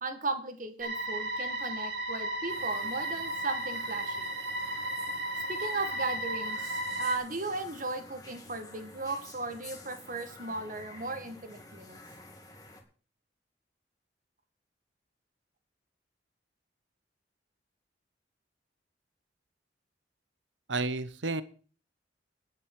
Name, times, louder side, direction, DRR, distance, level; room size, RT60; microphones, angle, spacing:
voice 1, 0.0-4.3 5.5-12.0, right 3 dB, 45° right, 8 dB, 1.9 m, -36 dB
sound 1, 0.8-7.2, right 1 dB, 70° right, 2.1 m, -34 dB
sound 2, 2.5-12.8, left 2 dB, 20° left, 2.2 m, -50 dB
voice 2, 20.7-21.4, right 3 dB, 90° right, 15 dB, 1.0 m, -31 dB
10.5 x 8.1 x 7.4 m, 0.40 s
head